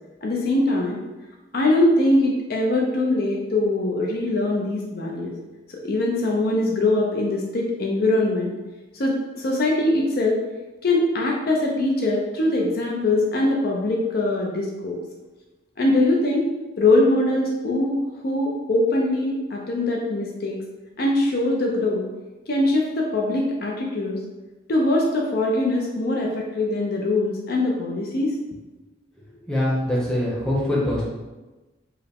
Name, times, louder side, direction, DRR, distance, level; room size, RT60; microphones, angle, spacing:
voice 1, 0.2-1.0 1.5-5.3 5.7-8.6 8.9-10.4 10.8-15.0 15.8-16.5 16.8-20.6 21.0-22.1 22.5-24.2 24.7-28.3, left 2 dB, 50° left, -1 dB, 0.4 m, -22 dB
voice 2, 29.5-31.0, left 1 dB, 5° left, -6 dB, 0.7 m, -23 dB
4.5 x 2.1 x 3.4 m, 1.1 s
head